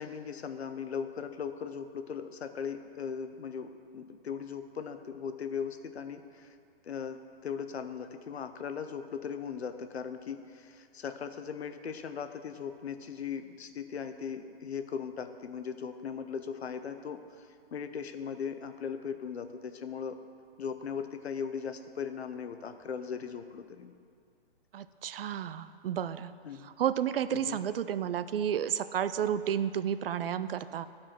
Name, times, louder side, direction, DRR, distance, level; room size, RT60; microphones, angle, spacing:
voice 1, 0.0-6.5 6.8-20.2 20.6-23.9 26.4-26.7 27.3-27.6, left 7 dB, 80° left, 9 dB, 0.8 m, -38 dB
voice 2, 24.7-26.3 26.6-30.9, right 9 dB, 65° right, 14 dB, 0.5 m, -31 dB
11.5 x 4.8 x 6.0 m, 2.2 s
hypercardioid pair, 145°, 31 cm